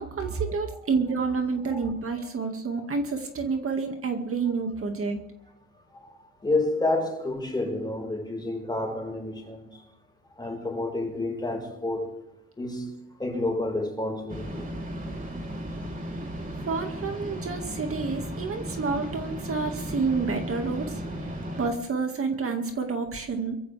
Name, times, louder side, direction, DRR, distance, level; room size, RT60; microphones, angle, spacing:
voice 1, 0.0-5.2 16.7-21.0 21.6-23.5, right 4 dB, 45° right, 2.0 m, -29 dB
voice 2, 6.4-9.8 10.3-12.1 12.6-14.7, left 2 dB, 15° left, 4.9 m, -30 dB
sound 1, 14.3-21.7, equal, 25° right, 3.3 m, -35 dB
24.5 x 14.5 x 3.4 m
cardioid pair, 90°, 30 cm